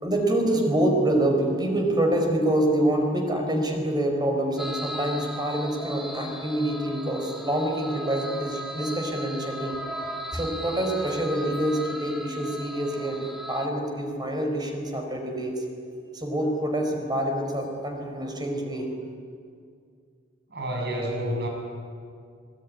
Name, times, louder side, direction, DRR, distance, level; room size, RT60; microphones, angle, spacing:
voice 1, 0.0-10.1 10.3-15.7 16.1-18.9, right 1 dB, 20° right, 3 dB, 4.9 m, -26 dB
sound 1, 4.6-13.7, equal, ahead, 2.2 m, -37 dB
voice 2, 20.5-21.5, equal, 55° right, 1 dB, 7.3 m, -29 dB
25.5 x 20.5 x 9.8 m, 2.2 s
head